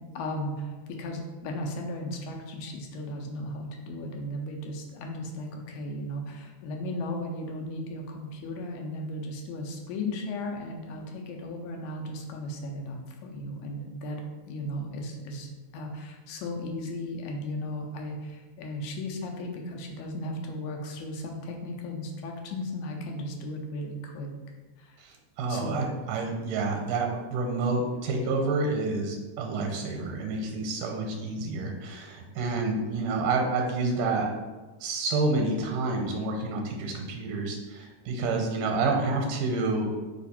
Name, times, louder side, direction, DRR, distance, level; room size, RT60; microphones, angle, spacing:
voice 1, 0.2-24.3 24.8-24.9 25.5-25.9, left 1 dB, 80° left, 2 dB, 2.1 m, -36 dB
voice 2, 25.0-34.3 34.8-39.9, right 3 dB, 85° right, 2 dB, 2.1 m, -29 dB
4.9 x 2.4 x 4.0 m, 1.2 s
omnidirectional pair, 3.6 m